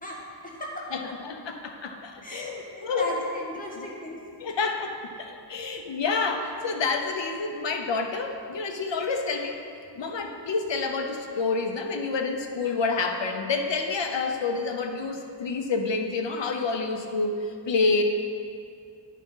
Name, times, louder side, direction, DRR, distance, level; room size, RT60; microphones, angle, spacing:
voice 1, 0.0-0.9 2.2-4.2 5.6-5.7, left 1 dB, 20° left, -4 dB, 1.6 m, -36 dB
voice 2, 0.9-3.1 3.8-3.9 4.4-9.6 10.0-18.0, left 4 dB, 75° left, 4 dB, 0.8 m, -28 dB
10.0 x 3.7 x 5.5 m, 2.4 s
wide cardioid pair, 75°, 44 cm